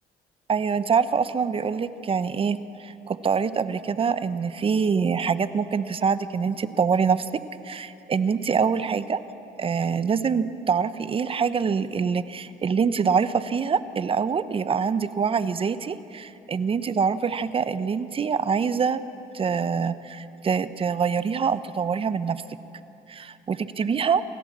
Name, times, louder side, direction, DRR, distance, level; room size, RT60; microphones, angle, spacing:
voice 1, 0.5-7.3 7.6-9.2 9.6-19.0 19.3-22.4 23.1-24.2, right 6 dB, 35° right, 13 dB, 0.8 m, -25 dB
27.5 x 16.0 x 7.4 m, 2.7 s
cardioid pair, 110°, 17 cm